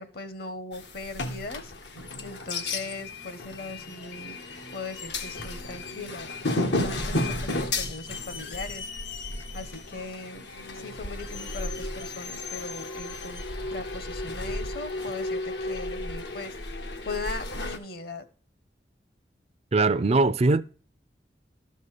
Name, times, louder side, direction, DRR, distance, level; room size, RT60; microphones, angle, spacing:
voice 1, 0.0-4.4 4.7-8.9 9.5-13.4 13.7-16.6 17.0-18.2, left 3 dB, 60° left, 1.2 m, -39 dB
sound 1, 0.7-17.8, left 2 dB, 85° left, 1.5 m, -33 dB
voice 2, 19.7-20.6, right 3 dB, 35° right, 0.5 m, -21 dB
13.0 x 5.4 x 6.6 m
head